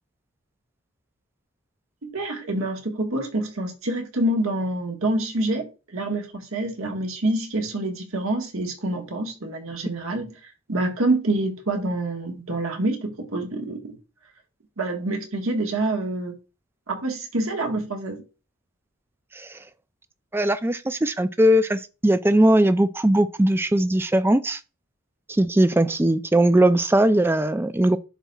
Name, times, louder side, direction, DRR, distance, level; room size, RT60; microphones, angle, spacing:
voice 1, 2.0-10.3 10.7-14.0 14.8-16.3 16.9-18.2, right 2 dB, 80° right, 1.5 m, -27 dB
voice 2, 20.3-24.6 25.3-28.0, right 1 dB, 10° right, 0.3 m, -19 dB
11.0 x 4.0 x 2.3 m
head